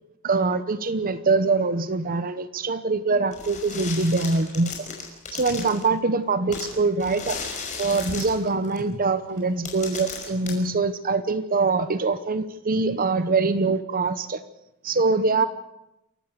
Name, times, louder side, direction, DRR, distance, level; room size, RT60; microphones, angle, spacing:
voice 1, 0.2-4.7 5.3-7.4 7.8-14.4 14.8-15.5, right 3 dB, 40° right, 13 dB, 0.9 m, -23 dB
sound 1, 3.3-5.9 6.5-8.8 9.4-9.5 9.6-10.5, left 5 dB, 35° left, 5.5 m, -35 dB
28.0 x 15.0 x 6.7 m, 0.88 s
head